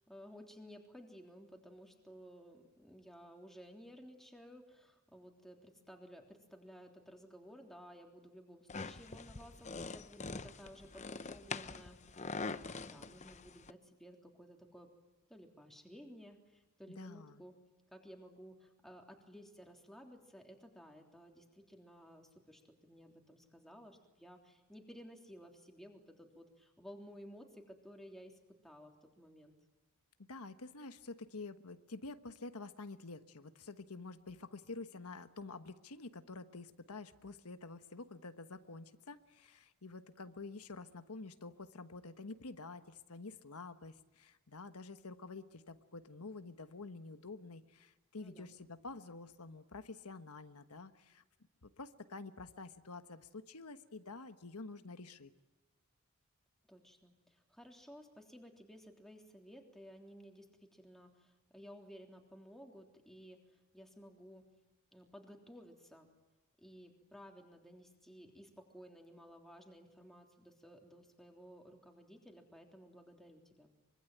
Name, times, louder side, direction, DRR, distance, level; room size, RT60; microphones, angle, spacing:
voice 1, 0.0-14.9 15.3-17.6 17.9-29.5 48.2-48.5 56.7-64.5 64.9-66.1 66.6-73.7, equal, ahead, 2 dB, 3.4 m, -56 dB
sound 1, 8.7-13.7, left 4 dB, 30° left, 0.8 m, -44 dB
voice 2, 16.9-17.4 30.2-51.2 51.6-55.3, left 3 dB, 85° left, 9 dB, 1.3 m, -49 dB
24.5 x 24.5 x 9.2 m, 1.0 s
head